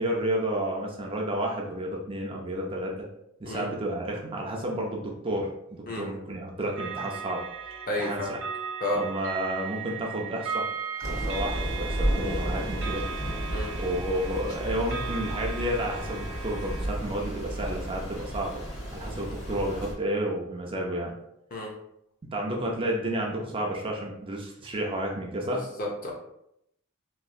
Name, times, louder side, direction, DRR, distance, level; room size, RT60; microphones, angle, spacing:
voice 1, 0.0-3.1 3.4-7.4 8.0-8.4 8.9-10.7 11.0-13.1 13.8-18.6 18.9-21.1 22.3-25.6, right 1 dB, 25° right, 0 dB, 0.4 m, -31 dB
sound 1, 6.8-16.9, right 6 dB, 65° right, 0.7 m, -37 dB
voice 2, 7.9-8.4 8.8-9.0 13.5-13.7 21.5-21.7 25.4-26.1, left 1 dB, 45° left, -1 dB, 0.7 m, -31 dB
Thunder / Rain, 11.0-19.9, right 1 dB, 80° left, 1.1 m, -32 dB
3.0 x 2.6 x 2.4 m, 0.77 s
head